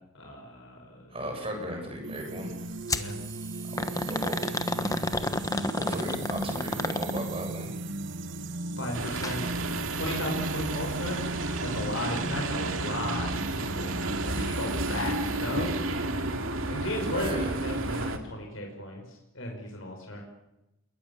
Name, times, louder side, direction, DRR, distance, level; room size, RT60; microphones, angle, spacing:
voice 1, 0.1-1.2 2.9-3.2 8.8-9.4 9.9-11.2 11.6-13.9 14.2-15.7 16.7-20.2, left 1 dB, 70° left, 1 dB, 5.5 m, -35 dB
voice 2, 1.1-2.5 3.7-4.6 5.8-7.7 17.1-17.5, equal, 25° right, 3 dB, 7.6 m, -36 dB
sound 1, 2.0-16.7, right 2 dB, 60° right, 1.2 m, -37 dB
sound 2, 2.9-3.1 3.8-7.5 9.1-9.4 9.7-9.8 10.7-10.8, left 2 dB, 15° left, 1.2 m, -31 dB
sound 3, 8.9-18.2, right 2 dB, 80° right, 2.5 m, -32 dB
28.0 x 22.0 x 7.2 m, 0.94 s
head